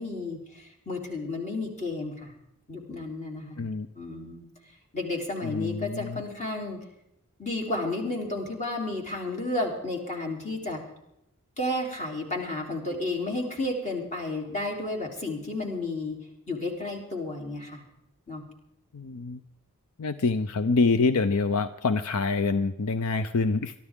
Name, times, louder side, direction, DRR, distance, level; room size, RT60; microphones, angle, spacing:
voice 1, 0.0-2.3 2.7-3.6 3.9-4.4 4.9-6.8 7.4-10.8 11.6-16.2 16.5-17.8 18.3-18.4, left 2 dB, 35° left, 1 dB, 3.5 m, -32 dB
voice 2, 5.4-6.2 18.9-19.4 20.0-23.7, left 4 dB, 70° left, 11 dB, 0.6 m, -26 dB
23.0 x 13.5 x 3.7 m, 0.82 s
head